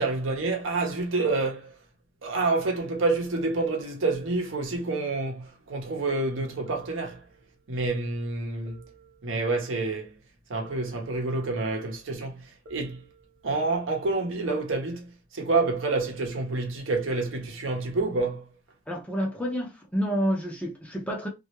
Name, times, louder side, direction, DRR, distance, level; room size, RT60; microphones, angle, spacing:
voice 1, 0.0-1.7 2.2-7.2 7.7-8.8 9.2-10.1 10.5-13.0 13.4-18.5, right 3 dB, 90° right, 0.7 m, -28 dB
sound 1, 6.7-7.8 8.7-9.8 10.6-11.8 12.6-13.8, right 3 dB, 60° right, 0.7 m, -56 dB
voice 2, 18.9-21.3, equal, 5° left, 0.6 m, -29 dB
2.3 x 2.0 x 2.9 m
head